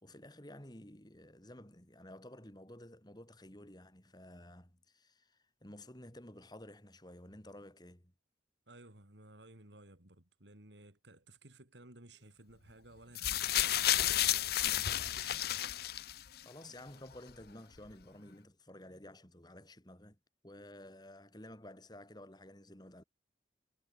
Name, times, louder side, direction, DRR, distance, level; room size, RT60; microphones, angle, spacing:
voice 1, 0.0-8.1 16.4-20.2 20.4-23.0, left 1 dB, 25° left, 4.5 m, -53 dB
voice 2, 8.7-14.7, right 2 dB, 80° right, 4.1 m, -57 dB
sound 1, 13.2-16.4 17.3-17.4, left 13 dB, 60° left, 0.7 m, -31 dB
head